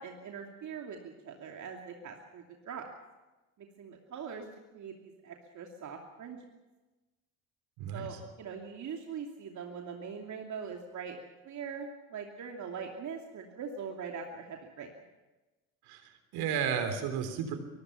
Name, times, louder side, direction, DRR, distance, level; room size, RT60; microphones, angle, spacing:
voice 1, 0.0-2.9 3.6-4.4 4.7-6.4 7.9-14.9, right 6 dB, 45° right, 2 dB, 2.8 m, -42 dB
voice 2, 7.8-8.2 15.9-17.6, right 7 dB, 60° right, 8 dB, 3.6 m, -33 dB
24.5 x 22.5 x 5.8 m, 1.1 s
figure-of-eight pair, 55°, 42 cm